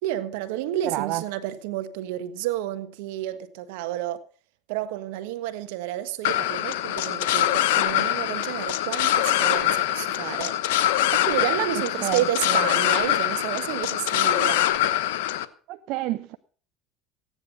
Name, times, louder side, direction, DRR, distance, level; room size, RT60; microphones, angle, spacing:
voice 1, 0.0-4.2 4.7-10.5 11.1-14.7, right 12 dB, 85° right, 1.4 m, -30 dB
voice 2, 0.8-1.2 12.0-12.7 15.7-16.4, right 16 dB, 65° right, 0.8 m, -29 dB
sound 1, 6.3-15.5, left 13 dB, 90° left, 1.0 m, -24 dB
15.5 x 9.9 x 5.5 m
supercardioid pair, 100°, 0 cm